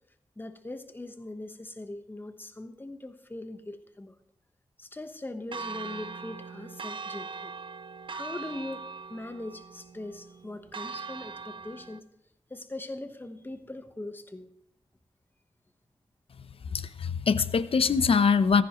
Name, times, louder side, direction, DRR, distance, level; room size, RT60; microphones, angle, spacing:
voice 1, 0.4-4.2 4.8-7.5 8.1-12.1 12.5-14.5, left 2 dB, 20° left, 8 dB, 1.1 m, -41 dB
Church bell, 5.5-12.0, right 4 dB, 50° right, 0.6 m, -41 dB
voice 2, 16.7-18.6, left 5 dB, 60° left, 13 dB, 0.7 m, -23 dB
15.5 x 14.5 x 3.1 m, 0.77 s
cardioid pair, 60°, 11 cm